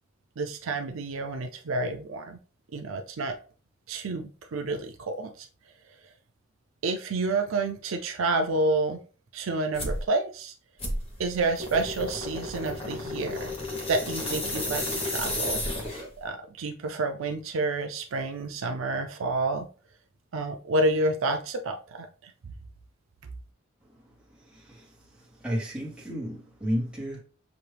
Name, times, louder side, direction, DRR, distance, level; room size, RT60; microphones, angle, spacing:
voice 1, 0.4-2.4 2.7-3.4 3.9-5.5 6.8-9.0 9.3-10.5 11.2-13.5 13.9-15.6 16.2-19.7 20.3-22.3, right 2 dB, 80° right, 0.5 m, -29 dB
sound 1, 9.7-10.0 10.8-16.2, left 1 dB, 30° left, 1.0 m, -32 dB
voice 2, 24.3-27.2, equal, 5° right, 1.3 m, -33 dB
6.1 x 2.5 x 3.3 m
head